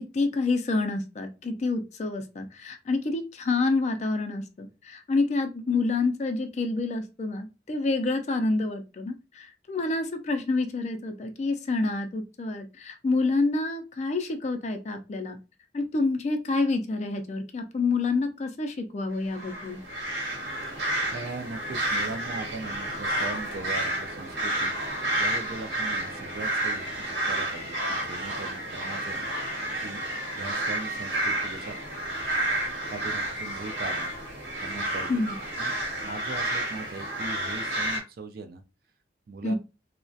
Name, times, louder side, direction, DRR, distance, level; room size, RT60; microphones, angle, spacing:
voice 1, 0.0-15.4 15.7-19.8 35.1-35.4 39.4-39.6, left 3 dB, 35° left, 0.3 m, -28 dB
sound 1, 19.3-38.0, right 1 dB, 70° right, 1.0 m, -30 dB
voice 2, 21.1-29.3 29.8-30.0 30.3-31.8 32.9-34.1 34.6-38.6 39.3-39.6, right 3 dB, 50° right, 0.3 m, -40 dB
2.3 x 2.1 x 2.6 m
head